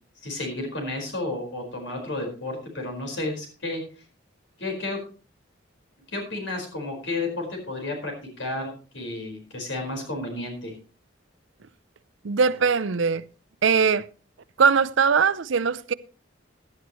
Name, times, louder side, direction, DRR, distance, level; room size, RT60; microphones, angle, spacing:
voice 1, 0.2-3.8 4.6-5.0 6.1-10.7, left 2 dB, 70° left, 4.8 m, -32 dB
voice 2, 12.2-13.2 13.6-14.1 14.6-15.9, right 5 dB, 75° right, 0.6 m, -21 dB
16.5 x 11.0 x 3.1 m
head